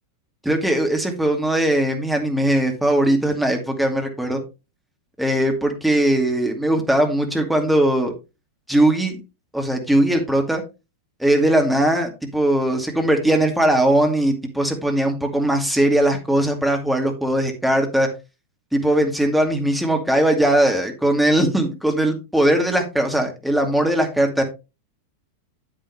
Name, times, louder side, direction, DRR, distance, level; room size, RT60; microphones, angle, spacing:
voice 1, 0.4-4.4 5.2-8.1 8.7-9.2 9.5-10.6 11.2-18.1 18.7-24.4, right 1 dB, 5° right, 3 dB, 2.3 m, -19 dB
8.9 x 8.7 x 3.2 m, 0.27 s
figure-of-eight pair, 90°, 0 cm